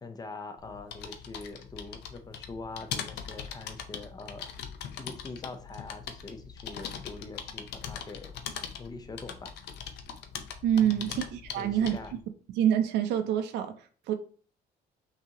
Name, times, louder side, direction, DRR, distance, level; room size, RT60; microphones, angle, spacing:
voice 1, 0.0-4.6 5.0-8.3 8.8-9.6 10.8-11.2 11.6-12.1, left 3 dB, 25° left, 8 dB, 0.6 m, -43 dB
sound 1, 0.6-12.2, left 8 dB, 80° left, 0.6 m, -41 dB
voice 2, 10.6-11.9 12.6-14.1, right 10 dB, 90° right, 7 dB, 0.5 m, -26 dB
5.9 x 2.8 x 2.8 m, 0.43 s
cardioid pair, 130°, 17 cm